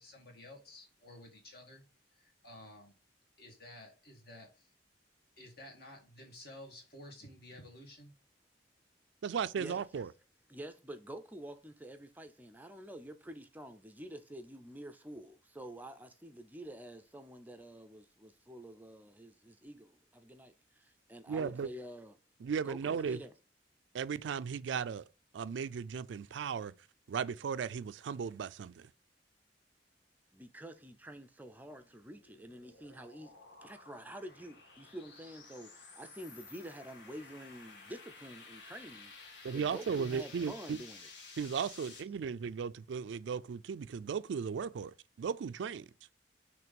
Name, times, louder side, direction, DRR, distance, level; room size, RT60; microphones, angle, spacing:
voice 1, 0.0-1.8 2.1-2.9 3.4-4.7 5.4-8.1, left 1 dB, 60° left, 1.9 m, -53 dB
voice 2, 9.2-10.1 21.3-21.7 22.4-23.2 23.9-25.1 25.3-26.7 27.1-28.9 39.4-40.8 41.4-45.9, right 6 dB, 80° right, 0.4 m, -36 dB
voice 3, 10.5-22.2 22.6-23.3 30.3-33.3 33.6-41.1, right 1 dB, 10° right, 0.5 m, -48 dB
sound 1, 31.7-42.0, left 4 dB, 80° left, 1.7 m, -54 dB
5.9 x 3.2 x 5.2 m
head